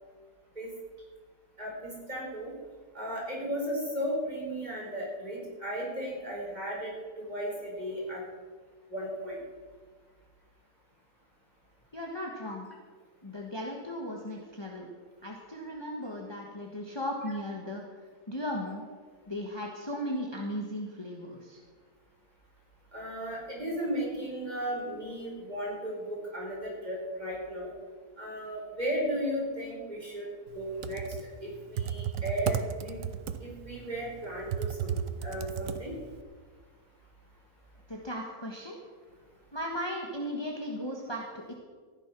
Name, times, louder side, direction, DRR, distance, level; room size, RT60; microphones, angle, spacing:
voice 1, 1.6-2.5 2.9-8.2 8.9-9.4 22.9-27.7 28.2-30.3 30.5-31.0 31.4-32.9 33.4-35.9, equal, 30° right, -4 dB, 4.9 m, -35 dB
voice 2, 11.9-12.7 13.2-14.9 15.2-17.8 18.3-18.8 19.3-21.6 37.9-38.8 39.5-41.5, equal, 20° left, -1 dB, 1.5 m, -36 dB
Computer keyboard, 30.6-36.2, right 8 dB, 70° right, 1.1 m, -34 dB
15.0 x 10.0 x 6.1 m, 1.5 s
omnidirectional pair, 1.5 m